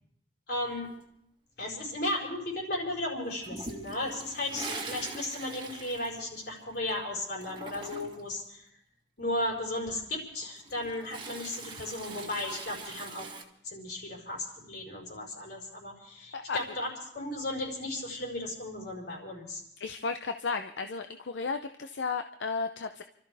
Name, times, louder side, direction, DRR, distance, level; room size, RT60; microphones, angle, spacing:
voice 1, 0.5-0.9 1.6-8.7 9.2-13.3 13.6-16.9 17.1-19.6, left 1 dB, 60° left, -2 dB, 5.0 m, -35 dB
Toilet flush, 3.4-6.9 7.2-8.3 10.4-13.4, right 3 dB, 25° right, 1.6 m, -42 dB
voice 2, 19.8-23.0, left 4 dB, 85° left, 8 dB, 0.6 m, -34 dB
30.0 x 13.0 x 3.5 m, 0.76 s
head